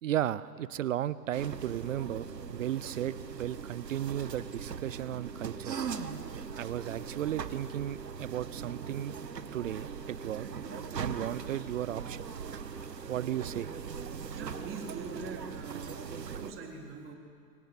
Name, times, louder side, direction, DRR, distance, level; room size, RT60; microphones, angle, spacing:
voice 1, 0.0-5.8 6.6-9.1 9.5-10.5 11.0-12.3 13.1-13.7, right 12 dB, 50° right, 18 dB, 0.8 m, -35 dB
sound 1, 1.3-16.5, right 6 dB, 75° right, 1.7 m, -40 dB
voice 2, 14.2-17.1, right 4 dB, 25° right, 2 dB, 3.8 m, -44 dB
25.0 x 24.5 x 9.4 m, 2.3 s
figure-of-eight pair, 115°, 50 cm